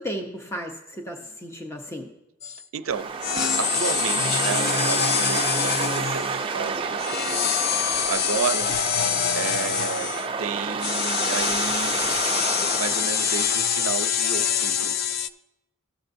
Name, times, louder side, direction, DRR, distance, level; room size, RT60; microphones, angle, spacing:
voice 1, 0.0-2.1, equal, 15° left, 0.7 m, -34 dB
sound 1, 2.4-2.6 3.2-6.4 7.0-10.3 10.8-15.3, left 8 dB, 50° left, 0.3 m, -25 dB
voice 2, 2.5-8.7 9.3-10.1 10.4-12.0 12.8-15.0, right 6 dB, 85° right, 0.5 m, -32 dB
sound 2, 2.9-14.1, right 5 dB, 25° right, 0.4 m, -29 dB
16.0 x 6.7 x 2.6 m
head